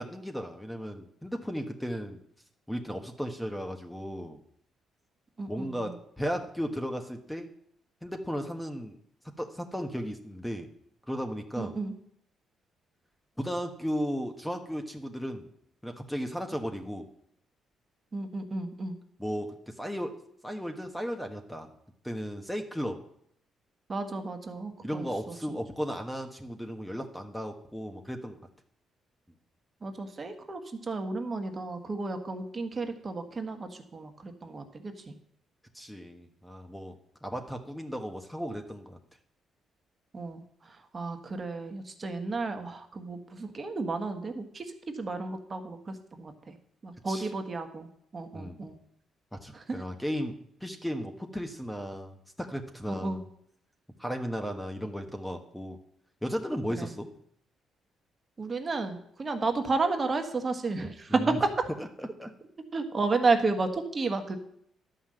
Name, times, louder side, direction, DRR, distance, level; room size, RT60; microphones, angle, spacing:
voice 1, 0.0-2.2 2.7-4.4 5.5-7.5 8.0-9.0 9.4-10.7 11.1-11.8 13.4-15.5 15.8-17.1 19.2-21.7 22.0-23.0 24.8-28.4 35.7-39.0 47.1-47.3 48.3-48.6 49.3-53.2 54.0-55.8 56.2-57.1 61.1-61.4 61.8-62.3, equal, 5° left, 5 dB, 1.3 m, -35 dB
voice 2, 5.4-5.9 11.6-11.9 18.1-19.0 23.9-25.3 29.8-35.1 40.1-40.4 40.9-46.6 46.8-48.7 49.5-49.6 53.0-53.2 56.8-56.9 58.4-61.5 62.7-64.4, right 3 dB, 35° right, 5 dB, 1.5 m, -32 dB
11.5 x 5.6 x 7.7 m, 0.69 s
cardioid pair, 90°, 0 cm